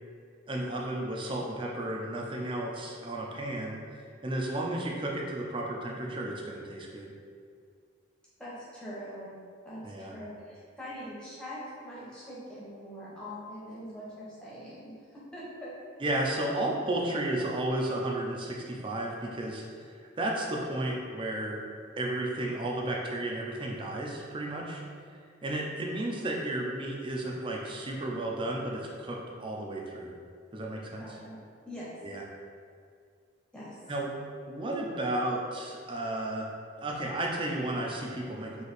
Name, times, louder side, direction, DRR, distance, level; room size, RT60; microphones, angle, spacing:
voice 1, 0.5-3.8 4.2-7.1 9.8-10.1 16.0-19.6 20.2-21.6 22.0-24.8 25.4-30.1 30.5-31.2 32.0-32.2 33.9-34.1 34.5-36.5 36.8-38.6, right 1 dB, 25° right, -1 dB, 0.4 m, -33 dB
voice 2, 8.4-9.3 9.6-15.7 31.0-31.4 31.6-31.9 33.5-33.8, equal, 5° left, -9 dB, 0.9 m, -43 dB
3.2 x 2.8 x 4.1 m, 2.2 s
head